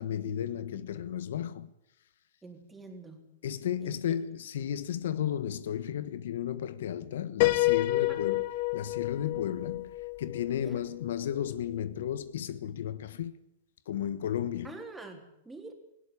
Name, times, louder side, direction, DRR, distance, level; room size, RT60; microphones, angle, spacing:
voice 1, 0.0-1.7 3.4-8.4 8.7-13.3 13.9-14.8, left 10 dB, 75° left, 1.3 m, -33 dB
voice 2, 2.4-3.2 3.8-4.2 8.1-8.2 10.6-10.8 14.6-15.7, right 3 dB, 10° right, 3.9 m, -46 dB
Piano, 7.4-11.2, left 19 dB, 50° left, 1.1 m, -29 dB
18.5 x 17.0 x 9.7 m
hypercardioid pair, 150°, 0 cm